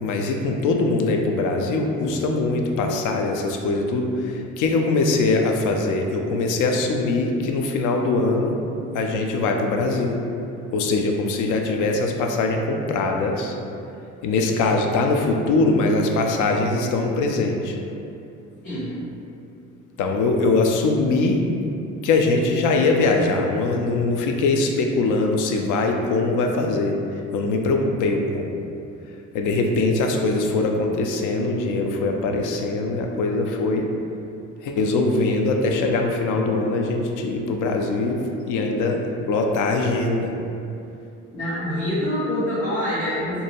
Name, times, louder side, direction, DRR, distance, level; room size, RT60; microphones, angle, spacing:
voice 1, 0.0-8.6 8.9-10.2 10.7-13.5 14.2-17.7 20.0-21.4 22.0-27.0 27.3-28.5 29.3-33.9 34.6-38.2 38.5-39.0 39.3-40.3, left 3 dB, 55° left, 2 dB, 0.4 m, -22 dB
voice 2, 18.6-19.0 41.3-43.4, equal, 80° left, -17 dB, 1.1 m, -25 dB
2.6 x 2.2 x 2.8 m, 2.6 s
hypercardioid pair, 55°, 37 cm